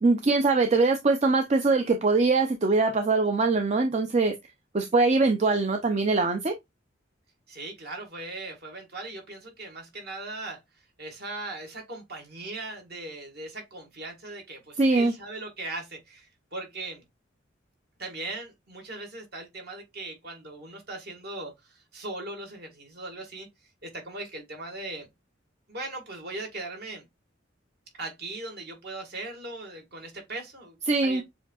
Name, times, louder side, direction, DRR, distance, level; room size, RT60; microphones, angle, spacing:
voice 1, 0.0-4.3 4.7-6.5 14.8-15.1 30.9-31.2, right 3 dB, 35° right, 0.5 m, -22 dB
voice 2, 7.5-10.6 11.0-17.0 18.0-23.5 23.8-25.1 25.7-27.0 28.0-30.8 31.0-31.2, right 2 dB, 55° right, 1.9 m, -39 dB
7.0 x 2.7 x 2.4 m
head